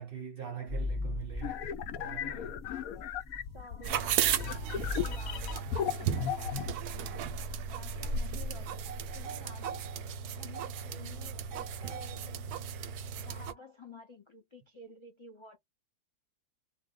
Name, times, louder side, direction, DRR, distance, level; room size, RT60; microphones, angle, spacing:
voice 1, 0.0-1.7 2.0-2.5, right 8 dB, 50° right, 0.7 m, -42 dB
sound 1, 0.7-9.2, left 2 dB, 15° right, 0.7 m, -41 dB
sound 2, 1.4-6.7, left 9 dB, 70° left, 1.0 m, -36 dB
voice 2, 3.5-6.2 6.7-7.4 7.7-9.9 10.3-12.5 13.2-15.6, left 3 dB, 50° left, 0.3 m, -52 dB
sound 3, 3.8-13.5, right 8 dB, 90° right, 1.1 m, -35 dB
2.6 x 2.1 x 3.7 m
omnidirectional pair, 1.6 m